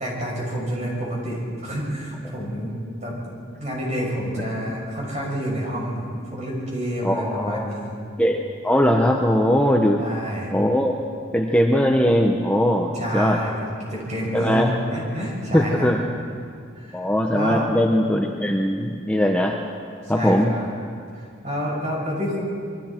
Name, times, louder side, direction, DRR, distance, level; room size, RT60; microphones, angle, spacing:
voice 1, 0.0-2.7 3.0-3.2 3.6-8.0 10.0-10.5 12.9-15.9 16.7-17.1 17.3-17.6 20.1-20.7 21.1-22.4, equal, 35° right, -3 dB, 6.7 m, -28 dB
voice 2, 7.0-7.7 8.2-10.0 10.5-10.9 11.3-13.4 14.3-14.7 15.5-16.0 16.9-19.6 20.1-20.5, equal, 5° left, 1 dB, 0.9 m, -20 dB
27.0 x 22.5 x 4.5 m, 2.3 s
head